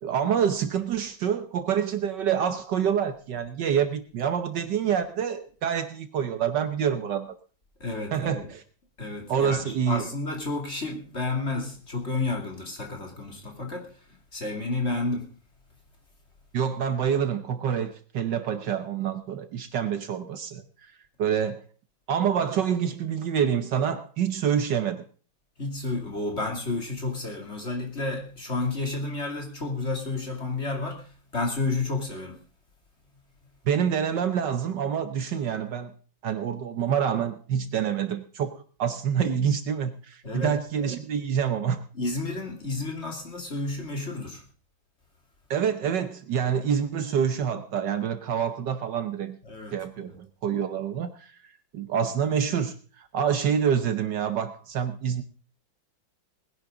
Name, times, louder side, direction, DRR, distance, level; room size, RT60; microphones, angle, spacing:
voice 1, 0.0-7.3 8.1-8.6 9.3-10.0 16.5-20.9 21.2-21.6 22.1-25.1 33.7-35.9 36.2-41.8 45.5-49.4 49.7-51.3 51.7-55.2, right 8 dB, 65° right, 10 dB, 1.4 m, -27 dB
voice 2, 7.8-8.5 9.0-13.9 14.3-15.3 25.6-32.4 40.2-40.5 41.9-44.4 49.4-50.1, left 3 dB, 30° left, 1 dB, 3.0 m, -31 dB
20.0 x 11.0 x 3.8 m, 0.39 s
omnidirectional pair, 2.2 m